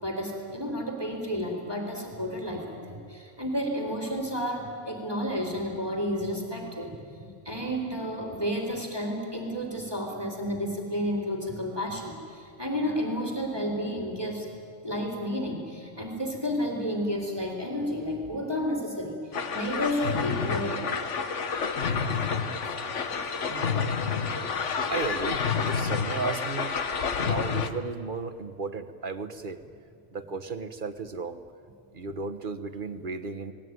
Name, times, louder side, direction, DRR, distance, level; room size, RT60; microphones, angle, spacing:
voice 1, 0.0-14.5 14.8-21.0 23.4-23.5, equal, 15° right, 1 dB, 3.7 m, -31 dB
sound 1, 19.3-27.7, left 6 dB, 60° left, 1.5 m, -29 dB
voice 2, 23.5-24.0 24.9-26.8 27.2-29.6 30.1-31.4 31.9-33.5, right 4 dB, 40° right, 8 dB, 1.3 m, -34 dB
29.5 x 19.5 x 9.5 m, 2.3 s
omnidirectional pair, 1.4 m